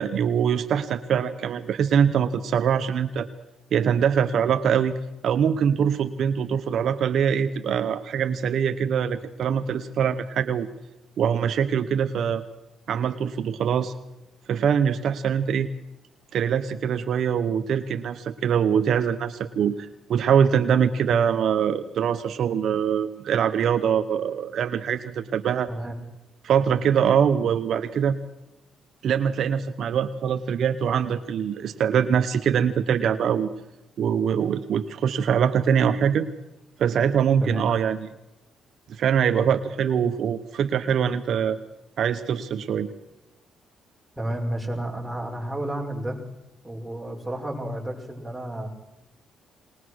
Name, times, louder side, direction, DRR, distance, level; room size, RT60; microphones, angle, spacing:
voice 1, 0.0-3.3 3.7-4.9 5.2-10.7 11.2-12.4 12.9-13.9 14.5-15.7 16.3-25.7 26.4-28.2 29.0-33.5 34.0-36.3 36.8-38.1 39.0-41.6 42.0-42.9, right 8 dB, 65° right, 9 dB, 1.0 m, -23 dB
voice 2, 44.2-46.2 46.6-48.7, right 1 dB, 5° right, 0 dB, 5.8 m, -31 dB
21.0 x 20.5 x 6.4 m, 0.92 s
cardioid pair, 90°, 0 cm